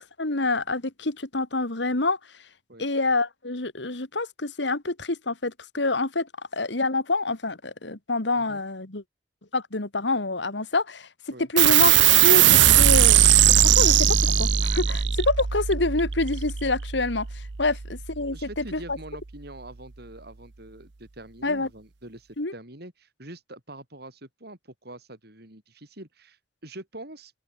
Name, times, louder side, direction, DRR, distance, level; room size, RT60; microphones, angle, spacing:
voice 1, 0.0-2.2 2.8-6.3 6.5-9.0 9.5-11.1 11.5-12.0 12.2-13.2 13.6-17.3 17.6-18.4 18.7-19.0 21.4-21.7 22.4-22.5, left 2 dB, 75° left, 2.4 m, -27 dB
sound 1, 11.6-18.5, right 10 dB, 85° right, 0.9 m, -19 dB
voice 2, 18.3-27.3, right 1 dB, 60° right, 7.4 m, -44 dB
open air
head